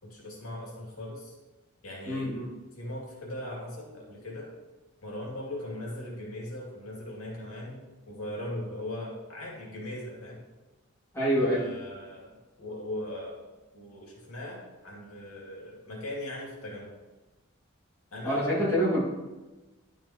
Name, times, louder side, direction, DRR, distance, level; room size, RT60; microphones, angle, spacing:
voice 1, 0.0-1.3 1.8-2.3 2.7-4.5 5.0-10.4 11.4-13.4 13.7-17.0 18.1-18.7, left 1 dB, 85° left, -2 dB, 2.3 m, -39 dB
voice 2, 2.1-2.5 11.1-11.6 18.2-19.0, equal, 15° left, -8 dB, 2.1 m, -26 dB
11.0 x 5.4 x 2.9 m, 1.1 s
head